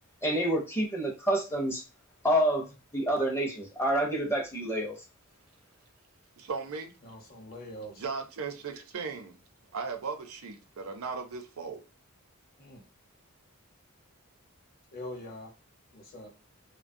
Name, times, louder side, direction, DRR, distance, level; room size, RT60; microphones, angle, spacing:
voice 1, 0.2-1.8 2.2-2.7 2.9-5.0, right 1 dB, 10° left, 0.5 m, -28 dB
voice 2, 6.4-6.9 7.9-9.4 9.7-11.8, right 5 dB, 85° right, 0.6 m, -37 dB
voice 3, 7.0-8.0 12.6-12.8 14.9-15.5 15.9-16.3, left 1 dB, 45° left, 0.8 m, -43 dB
3.0 x 2.2 x 2.5 m
head